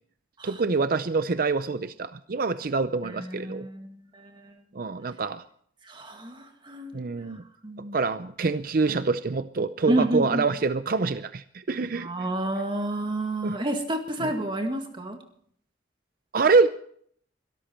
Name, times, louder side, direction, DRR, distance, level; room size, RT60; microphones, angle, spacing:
voice 1, 0.4-3.7 4.7-5.4 6.9-7.4 7.9-12.1 13.4-13.6 14.2-14.3 16.3-16.7, right 4 dB, 50° right, 12 dB, 0.5 m, -25 dB
voice 2, 3.0-4.5 5.9-6.9 7.6-8.0 8.9-9.0 9.9-10.4 11.9-15.2, right 1 dB, 25° right, 4 dB, 2.0 m, -30 dB
23.0 x 13.5 x 4.4 m, 0.63 s
head